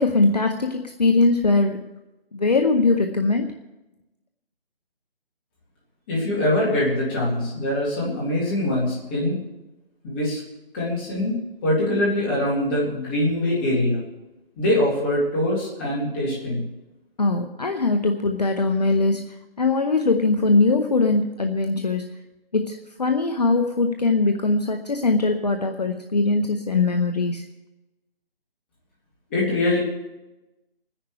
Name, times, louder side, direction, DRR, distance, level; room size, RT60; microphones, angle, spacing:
voice 1, 0.0-1.8 2.3-3.5 17.2-22.0 22.5-27.4, left 3 dB, 45° left, 5 dB, 0.8 m, -21 dB
voice 2, 6.1-9.4 10.0-10.4 10.7-14.0 14.6-16.6 29.3-29.8, left 1 dB, 10° left, -6 dB, 2.1 m, -23 dB
29.5 x 10.0 x 3.3 m, 1.0 s
figure-of-eight pair, 170°, 30 cm